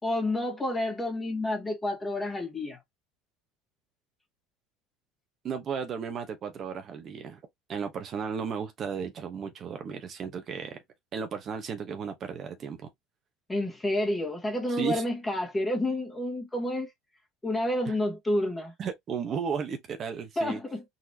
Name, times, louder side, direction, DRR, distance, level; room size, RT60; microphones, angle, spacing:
voice 1, 0.0-2.8 13.5-16.9 17.4-18.7 20.3-20.8, left 1 dB, 15° left, 1.7 m, -29 dB
voice 2, 5.4-7.4 7.7-10.8 11.1-12.9 14.7-15.0 17.8-17.9 18.8-20.6, right 6 dB, 45° right, 1.0 m, -34 dB
4.0 x 2.9 x 2.7 m
supercardioid pair, 95°, 0 cm